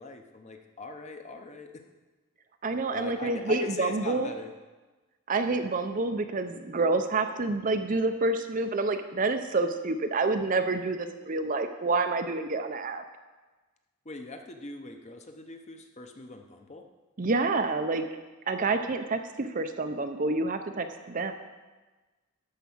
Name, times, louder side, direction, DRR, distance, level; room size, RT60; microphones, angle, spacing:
voice 1, 0.0-1.7 2.9-4.5 14.0-16.9, left 3 dB, 30° left, 5 dB, 0.8 m, -41 dB
voice 2, 2.6-4.3 5.3-13.0 17.2-18.0 18.5-21.3, right 3 dB, 35° right, 7 dB, 0.5 m, -28 dB
12.0 x 4.8 x 7.1 m, 1.2 s
head